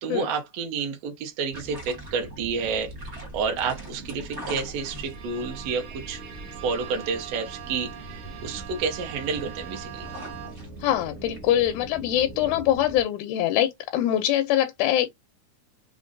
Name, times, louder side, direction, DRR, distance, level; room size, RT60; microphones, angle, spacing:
voice 1, 0.0-2.9 3.3-6.2 6.6-10.1, right 5 dB, 65° right, 1.8 m, -30 dB
sound 1, 1.5-13.0, right 2 dB, 45° right, 0.8 m, -41 dB
Bowed string instrument, 4.8-10.9, right 11 dB, 85° right, 2.4 m, -43 dB
voice 2, 10.8-15.1, left 12 dB, 80° left, 1.9 m, -23 dB
5.1 x 2.5 x 2.5 m
omnidirectional pair, 3.6 m